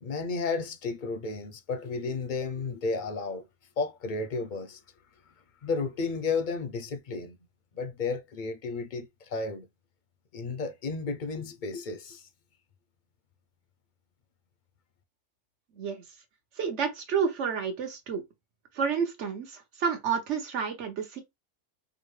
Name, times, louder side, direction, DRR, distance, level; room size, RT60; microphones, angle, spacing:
voice 1, 0.0-3.5 3.8-4.8 5.6-7.4 7.7-9.7 10.3-12.3, left 4 dB, 55° left, 0.6 m, -32 dB
voice 2, 16.6-18.2 18.7-21.2, right 6 dB, 70° right, 1.3 m, -30 dB
4.8 x 2.4 x 3.1 m
omnidirectional pair, 1.2 m